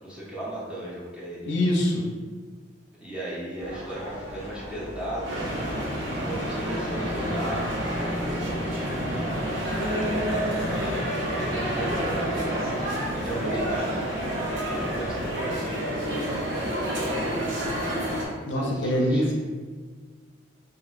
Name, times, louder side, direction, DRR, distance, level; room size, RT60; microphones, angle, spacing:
voice 1, 0.0-1.6 3.0-5.5 6.1-9.5 10.2-12.7 13.1-17.3 18.5-19.3, right 1 dB, 5° right, -8 dB, 0.7 m, -37 dB
voice 2, 1.5-2.1 18.5-19.3, left 1 dB, 65° left, -1 dB, 0.4 m, -24 dB
sound 1, 3.6-15.4, right 1 dB, 35° right, 0.8 m, -39 dB
sound 2, 5.2-18.3, equal, 65° right, 0.7 m, -29 dB
2.9 x 2.8 x 2.4 m, 1.5 s
head